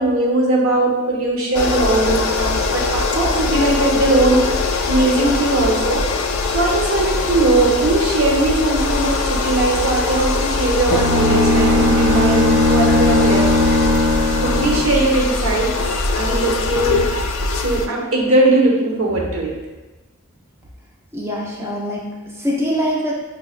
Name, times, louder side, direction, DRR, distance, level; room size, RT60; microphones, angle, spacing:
voice 1, 0.0-6.0 6.5-13.5 14.4-15.7 16.1-17.1 17.6-19.6, right 2 dB, 90° right, -2 dB, 0.8 m, -19 dB
sound 1, 1.5-17.9, left 3 dB, 75° left, 0.3 m, -22 dB
Bowed string instrument, 10.9-14.9, left 1 dB, 55° right, 1.3 m, -17 dB
voice 2, 21.1-23.1, equal, 10° right, -4 dB, 0.4 m, -23 dB
5.3 x 2.1 x 2.4 m, 1.1 s
head